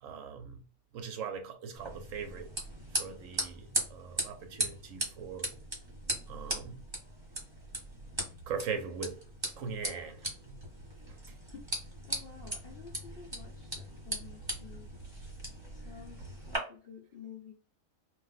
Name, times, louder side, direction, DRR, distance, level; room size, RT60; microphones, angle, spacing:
voice 1, 0.0-0.6 0.9-2.5 3.0-5.5 6.3-6.8 8.5-9.2 9.6-10.6 11.3-11.4, right 6 dB, 70° right, 0.9 m, -40 dB
sound 1, 1.8-16.6, right 1 dB, 20° right, 1.0 m, -39 dB
voice 2, 11.5-15.1 15.7-17.5, left 6 dB, 60° left, 0.6 m, -51 dB
2.5 x 2.0 x 3.9 m
omnidirectional pair, 1.5 m